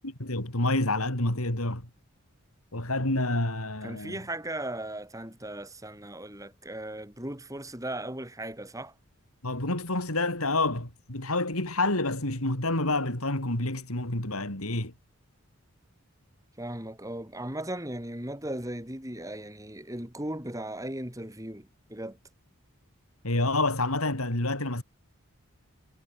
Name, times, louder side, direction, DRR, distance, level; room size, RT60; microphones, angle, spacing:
voice 1, 0.2-1.9 2.7-4.2 9.4-14.9 23.2-24.8, left 2 dB, 80° left, 5.3 m, -28 dB
voice 2, 3.8-8.9 16.6-22.2, right 1 dB, 15° right, 5.0 m, -37 dB
head